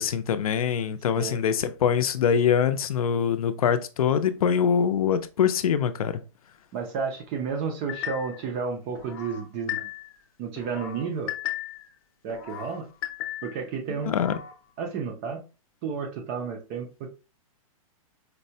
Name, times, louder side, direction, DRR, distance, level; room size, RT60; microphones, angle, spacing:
voice 1, 0.0-6.2 14.1-14.3, left 8 dB, 85° left, 0.5 m, -24 dB
voice 2, 6.7-9.8 10.4-11.3 12.2-12.9 13.4-14.1 14.8-15.4 15.8-17.1, right 5 dB, 15° right, 0.3 m, -31 dB
sound 1, 7.9-8.5 8.9-10.2 10.6-11.9 12.3-13.6 14.0-14.5, left 13 dB, 40° left, 0.7 m, -36 dB
4.4 x 2.1 x 2.7 m
hypercardioid pair, 170°, 18 cm